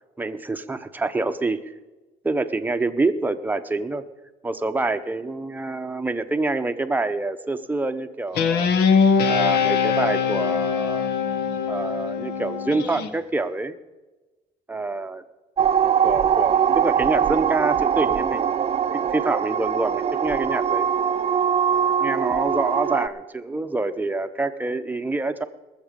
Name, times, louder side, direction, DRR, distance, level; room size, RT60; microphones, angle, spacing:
voice 1, 0.2-1.7 2.2-4.0 4.4-8.7 9.2-11.1 11.7-13.7 14.7-15.2 16.0-18.6 18.9-20.9 22.0-25.4, right 2 dB, 10° right, 8 dB, 0.8 m, -26 dB
Guitar, 8.3-13.1, left 6 dB, 70° left, 1.2 m, -22 dB
sound 1, 15.6-23.1, right 8 dB, 35° right, 0.5 m, -22 dB
20.0 x 7.3 x 5.3 m, 1.1 s
cardioid pair, 110°, 17 cm